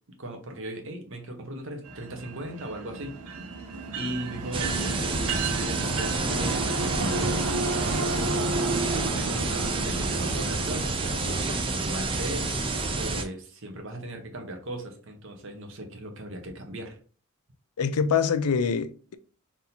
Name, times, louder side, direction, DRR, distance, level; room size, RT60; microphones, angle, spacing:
voice 1, 0.2-3.1 3.9-5.2 5.5-8.8 9.1-12.5 12.9-17.0, right 1 dB, 60° right, 1.0 m, -38 dB
sound 1, 1.8-10.8, right 3 dB, 90° right, 0.7 m, -32 dB
sound 2, 4.5-13.2, right 3 dB, 25° right, 0.5 m, -29 dB
voice 2, 17.8-19.1, left 6 dB, 85° left, 0.5 m, -25 dB
3.6 x 2.7 x 4.1 m
head